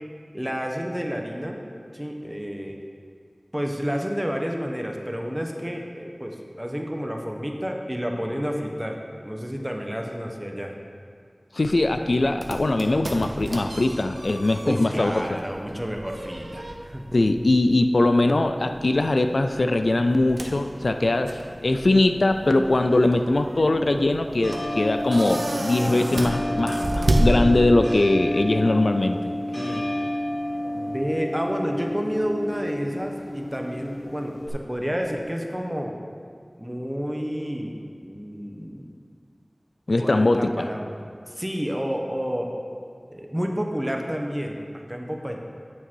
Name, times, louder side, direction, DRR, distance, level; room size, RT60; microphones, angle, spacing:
voice 1, 0.3-1.6 1.9-2.8 3.5-9.0 9.2-10.7 14.6-17.0 29.0-29.2 29.5-29.9 30.7-36.0 36.6-38.9 40.0-40.9 41.3-42.5 43.1-45.4, equal, 15° right, 2 dB, 1.0 m, -30 dB
voice 2, 11.5-15.3 17.1-29.2 39.9-40.7, left 2 dB, 85° left, 8 dB, 0.3 m, -21 dB
sound 1, 11.6-28.0, right 1 dB, 90° right, 0.7 m, -31 dB
sound 2, 18.5-34.5, left 1 dB, 60° left, 2.0 m, -33 dB
8.7 x 6.7 x 4.6 m, 2.2 s
wide cardioid pair, 50°, 0 cm